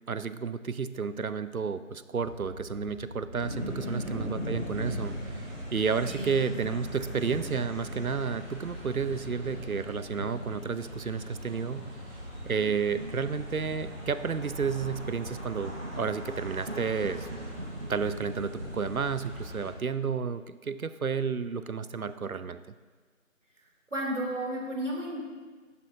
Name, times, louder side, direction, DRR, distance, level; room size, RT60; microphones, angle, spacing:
voice 1, 0.1-5.4 5.7-11.9 12.4-17.3 17.9-22.6, right 5 dB, 85° right, 13 dB, 0.7 m, -31 dB
sound 1, 2.2-19.8, equal, 75° left, 2.2 m, -45 dB
sound 2, 3.3-19.7, equal, 10° right, 3.0 m, -41 dB
voice 2, 3.9-4.3 6.1-6.6 23.9-25.2, equal, 60° right, -2 dB, 2.4 m, -33 dB
sound 3, 11.4-12.6 12.9-19.7, right 1 dB, 45° right, 0.7 m, -43 dB
11.5 x 10.0 x 2.7 m, 1.4 s
figure-of-eight pair, 170°, 41 cm